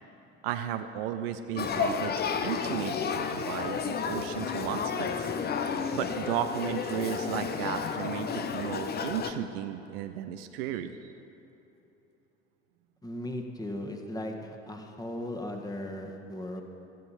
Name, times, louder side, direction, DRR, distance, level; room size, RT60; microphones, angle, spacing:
voice 1, 0.4-2.1 2.4-5.3 5.9-11.1, right 10 dB, 60° right, 9 dB, 0.7 m, -34 dB
Male speech man speaking / Child speech kid speaking / Conversation, 1.6-9.3, left 6 dB, 30° left, 0.9 m, -31 dB
voice 2, 13.0-16.6, left 1 dB, 10° left, 2 dB, 1.7 m, -37 dB
17.5 x 14.0 x 4.3 m, 3.0 s
figure-of-eight pair, 65°, 33 cm